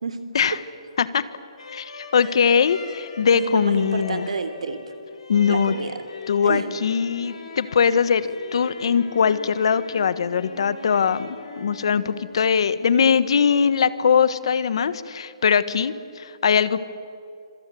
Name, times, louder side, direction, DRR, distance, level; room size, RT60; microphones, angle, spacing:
voice 1, 0.0-0.5 2.3-2.4 3.3-4.9 5.5-6.0 6.4-6.7, right 4 dB, 80° right, 9 dB, 3.3 m, -30 dB
sound 1, 1.6-13.0, left 3 dB, 75° left, 6.0 m, -40 dB
voice 2, 1.7-4.3 5.3-5.7 6.3-11.3 11.6-16.8, left 6 dB, 55° left, 15 dB, 1.4 m, -21 dB
26.0 x 23.5 x 9.4 m, 2.5 s
hypercardioid pair, 170°, 3 cm